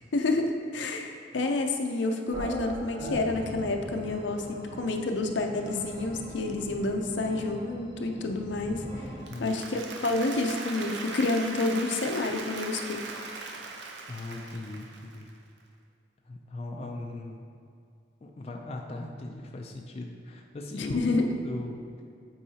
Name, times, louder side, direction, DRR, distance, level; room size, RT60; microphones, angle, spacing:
voice 1, 0.1-8.8 9.4-13.1 20.7-21.3, left 2 dB, 75° left, 4 dB, 0.6 m, -29 dB
sound 1, 2.3-9.3, equal, 45° right, 1.4 m, -40 dB
Applause, 9.1-15.3, right 3 dB, 70° right, 0.6 m, -39 dB
voice 2, 9.3-9.6 14.1-15.3 16.3-17.5 18.2-21.8, left 2 dB, 35° left, 1 dB, 0.4 m, -39 dB
8.4 x 4.7 x 2.8 m, 2.4 s
head